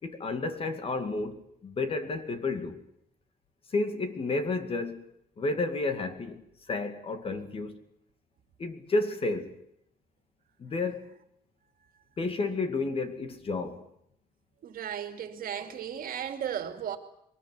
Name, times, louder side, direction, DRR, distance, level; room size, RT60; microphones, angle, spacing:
voice 1, 0.0-1.4 1.6-2.8 3.7-5.0 5.4-6.4 6.7-7.8 8.6-9.5 10.6-11.1 12.2-13.8, left 3 dB, 35° left, 2.3 m, -31 dB
voice 2, 14.6-17.0, right 9 dB, 65° right, 2.5 m, -35 dB
22.5 x 20.0 x 9.6 m
wide cardioid pair, 175°, 16 cm